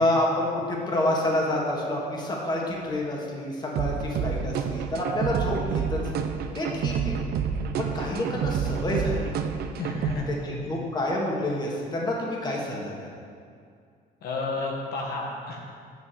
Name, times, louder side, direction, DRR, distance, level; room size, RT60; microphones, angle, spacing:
voice 1, 0.0-6.3 6.6-7.2 7.8-9.4 10.3-10.4 10.6-13.1, left 1 dB, 25° left, -2 dB, 1.9 m, -28 dB
sound 1, 3.8-10.2, right 7 dB, 65° right, 0.7 m, -29 dB
voice 2, 9.8-10.5 14.2-15.6, left 3 dB, 70° left, -1 dB, 1.6 m, -31 dB
7.4 x 6.2 x 7.8 m, 2.3 s
cardioid pair, 110°, 17 cm